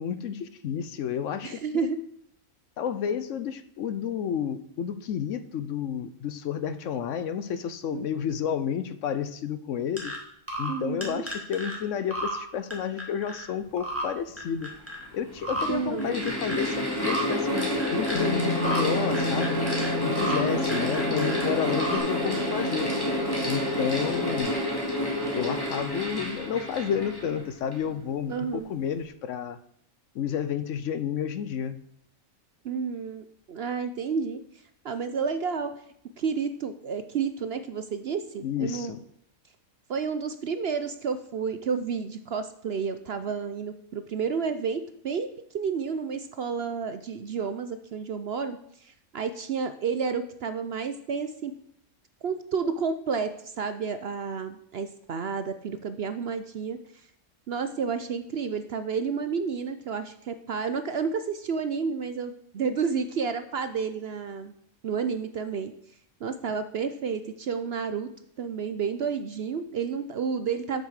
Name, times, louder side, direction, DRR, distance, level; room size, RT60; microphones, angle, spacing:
voice 1, 0.0-1.6 2.8-10.1 10.6-14.8 15.1-19.6 20.0-22.9 23.4-24.5 25.4-29.6 30.1-31.8 38.4-39.0, left 8 dB, 70° left, 14 dB, 0.9 m, -31 dB
voice 2, 1.4-2.0 7.9-8.1 10.7-11.3 15.7-16.2 20.3-20.8 28.3-28.8 32.6-34.4 34.8-35.7 36.2-38.9 39.9-51.5 52.2-57.1 57.5-64.5 64.8-65.7 66.2-68.1 68.4-70.8, right 6 dB, 60° right, 11 dB, 0.7 m, -31 dB
sound 1, 10.0-10.2 10.5-10.8 11.0-11.8 12.1-12.4 12.7-13.4 13.8-14.1 14.4-15.0 15.4-15.7 16.0-16.7 17.0-17.2 17.6-18.3 18.6-18.8 19.1-20.4 20.7-21.4 21.7-22.0, right 1 dB, 10° right, 2.1 m, -33 dB
Mechanical fan, 14.3-14.4 15.2-27.9, left 1 dB, 15° left, 2.2 m, -29 dB
Bass guitar, 18.1-24.4, left 1 dB, 50° left, 1.5 m, -34 dB
8.0 x 6.8 x 6.4 m, 0.72 s
omnidirectional pair, 1.5 m